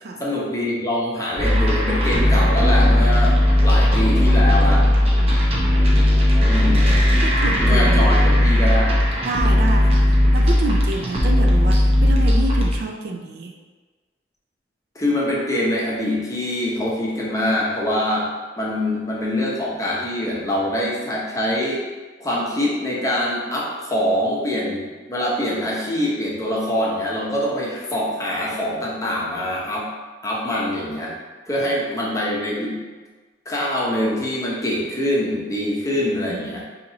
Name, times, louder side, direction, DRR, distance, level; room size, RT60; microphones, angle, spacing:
voice 1, 0.2-3.4 3.6-4.9 6.5-7.0 7.5-9.0 14.9-18.3 18.6-21.8 22.2-29.9 30.2-31.2 31.5-32.8 33.5-36.6, left 1 dB, 20° left, -5 dB, 0.7 m, -24 dB
sound 1, 1.4-12.8, left 1 dB, 35° right, 0.7 m, -16 dB
voice 2, 5.2-5.8 6.9-8.3 9.2-13.6 36.3-36.6, right 3 dB, 60° right, 4 dB, 0.4 m, -29 dB
5.2 x 2.8 x 2.7 m, 1.3 s
head